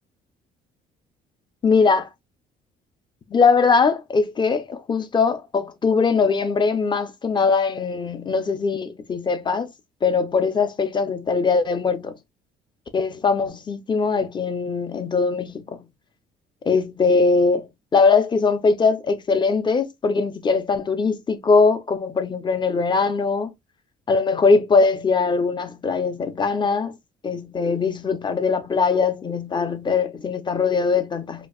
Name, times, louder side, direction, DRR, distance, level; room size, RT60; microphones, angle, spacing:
voice 1, 1.6-2.1 3.3-9.7 10.0-12.2 12.9-15.9 16.7-23.5 24.1-27.0 27.2-31.5, left 4 dB, 25° left, 0.7 m, -21 dB
4.5 x 2.6 x 2.3 m
cardioid pair, 110°, 17 cm